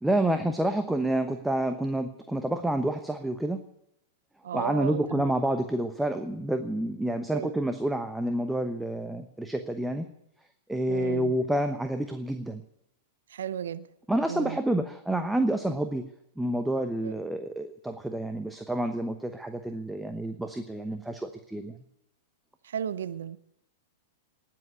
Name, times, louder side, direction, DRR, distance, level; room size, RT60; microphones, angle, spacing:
voice 1, 0.0-3.6 4.5-10.1 10.7-12.6 14.1-16.0 16.4-21.7, right 1 dB, 5° right, 8 dB, 1.0 m, -29 dB
voice 2, 4.4-5.3 7.3-7.5 10.9-11.3 13.3-13.8 14.3-14.6 17.0-17.1 22.6-23.4, right 8 dB, 65° right, 15 dB, 0.8 m, -34 dB
19.0 x 7.7 x 9.9 m, 0.81 s
figure-of-eight pair, 100°, 0 cm